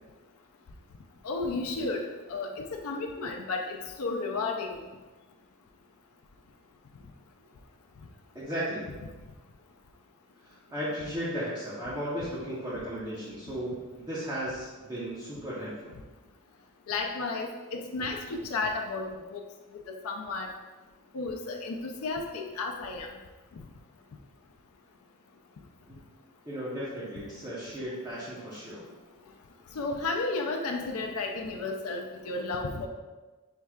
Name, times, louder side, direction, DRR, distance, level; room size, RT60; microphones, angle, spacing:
voice 1, 1.2-4.7 16.9-19.4 20.0-20.5 21.1-23.1 29.8-32.9, left 3 dB, 80° left, 2 dB, 0.4 m, -33 dB
voice 2, 8.3-8.9 10.4-16.0 25.9-26.0 26.4-28.9, equal, 15° right, -10 dB, 0.8 m, -35 dB
5.7 x 3.2 x 2.3 m, 1.2 s
head